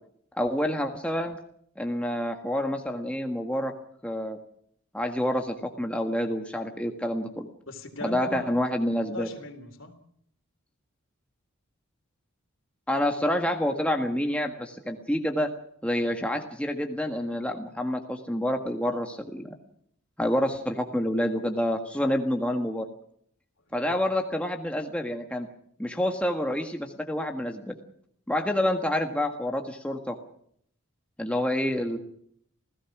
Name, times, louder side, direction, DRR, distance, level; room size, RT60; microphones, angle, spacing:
voice 1, 0.3-1.4 1.8-3.7 4.0-4.4 4.9-7.5 8.0-9.3 12.9-15.5 15.8-19.5 20.2-22.9 23.7-25.5 25.8-27.7 28.3-30.2 31.2-32.0, left 1 dB, 5° left, 3 dB, 1.6 m, -28 dB
voice 2, 7.7-8.7 9.1-10.0 23.7-24.0 31.7-31.9, left 2 dB, 60° left, 8 dB, 3.5 m, -39 dB
28.0 x 17.0 x 6.1 m, 0.66 s
head